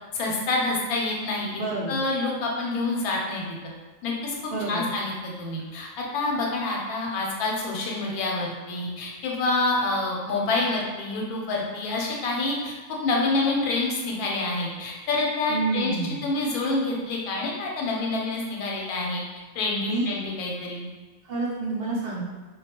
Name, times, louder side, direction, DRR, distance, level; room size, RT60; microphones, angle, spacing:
voice 1, 0.1-1.6 1.9-3.4 4.0-5.1 5.4-12.7 13.0-16.0 16.2-19.2 19.5-20.8, left 2 dB, 90° left, -1 dB, 1.1 m, -27 dB
voice 2, 1.6-2.0 4.5-4.9 15.5-16.2 19.8-20.1 21.3-22.2, right 3 dB, 65° right, -6 dB, 0.6 m, -28 dB
2.3 x 2.2 x 2.8 m, 1.3 s
omnidirectional pair, 1.5 m